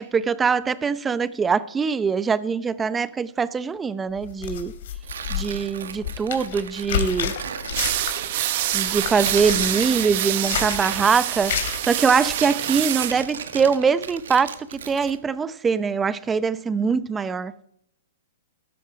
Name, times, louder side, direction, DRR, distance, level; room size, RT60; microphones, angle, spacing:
voice 1, 0.0-4.7 5.3-7.4 8.7-14.5 14.9-17.5, right 5 dB, 15° right, 0.6 m, -23 dB
sound 1, 4.2-8.3 8.6-9.9 10.3-10.9 11.4-11.8 12.1-12.4, left 9 dB, 65° left, 3.0 m, -30 dB
Tearing, 5.0-15.2, right 7 dB, 75° right, 1.5 m, -36 dB
sound 2, 7.7-13.2, right 14 dB, 50° right, 1.1 m, -26 dB
13.0 x 13.0 x 5.1 m
hypercardioid pair, 130°, 0 cm